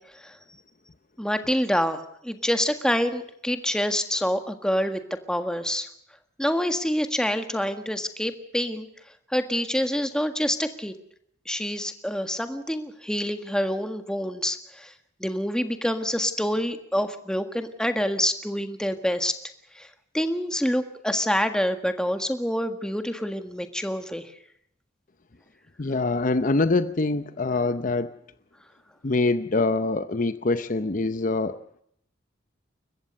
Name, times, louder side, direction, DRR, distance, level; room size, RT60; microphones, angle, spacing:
voice 1, 1.2-5.0 5.3-5.9 6.4-8.9 9.3-10.9 11.4-14.9 15.2-19.4 19.7-19.9 20.1-24.3, equal, 5° left, 7 dB, 1.6 m, -27 dB
voice 2, 25.8-28.1 29.0-31.5, left 3 dB, 45° left, 12 dB, 0.8 m, -24 dB
29.5 x 15.0 x 6.6 m, 0.71 s
head